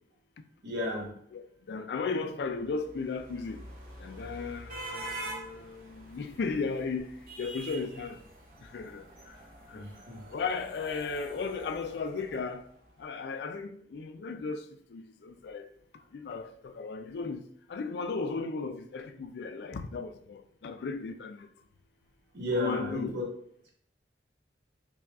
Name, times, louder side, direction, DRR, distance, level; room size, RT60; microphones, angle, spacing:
voice 1, 0.6-1.1 9.7-10.2 22.3-23.2, left 1 dB, 80° right, 1.2 m, -33 dB
voice 2, 1.3-3.6 4.0-8.2 8.7-9.0 9.7-9.8 10.3-12.6 13.0-14.6 14.9-15.7 16.1-16.5 16.8-17.4 17.7-21.5 22.6-23.2, left 4 dB, 70° left, 0.3 m, -35 dB
sound 1, 2.6-12.9, right 1 dB, 50° right, 0.8 m, -46 dB
5.5 x 2.3 x 2.3 m
head